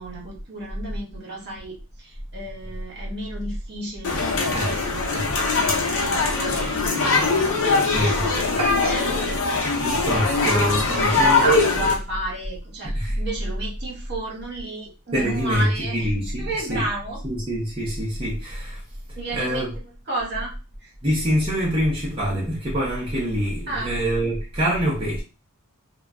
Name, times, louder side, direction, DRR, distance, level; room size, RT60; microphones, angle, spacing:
voice 1, 0.0-9.6 10.4-16.1 16.4-17.3 19.1-19.7 20.1-20.5 20.8-20.9 23.7-24.0, right 1 dB, 50° right, 1.2 m, -32 dB
sound 1, 4.0-12.0, left 3 dB, 65° left, 0.7 m, -22 dB
voice 2, 4.5-5.3 5.6-5.8 7.9-8.6 9.8-11.5 12.9-13.2 15.1-16.9 17.2-18.8 19.3-19.7 21.0-25.2, equal, 25° right, 0.7 m, -25 dB
sound 2, 8.6-11.3 11.8-12.0 12.4-12.5 12.8-12.9 13.2-13.3, right 4 dB, 80° right, 0.5 m, -36 dB
2.9 x 2.2 x 2.4 m
head